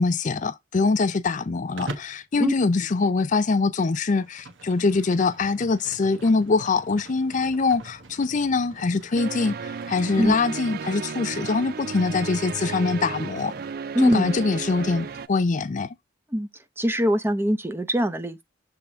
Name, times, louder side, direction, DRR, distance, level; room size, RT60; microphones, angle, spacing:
voice 1, 0.0-13.5 14.0-15.9, left 4 dB, 40° left, 0.4 m, -23 dB
Livestock farm animals working animals, 1.8-2.2 3.9-13.8, right 2 dB, 90° right, 1.2 m, -44 dB
sound 1, 9.2-15.3, right 5 dB, 55° right, 0.4 m, -34 dB
voice 2, 13.9-14.3 16.3-16.5 16.8-18.4, equal, 10° right, 0.7 m, -22 dB
6.9 x 3.5 x 4.3 m
head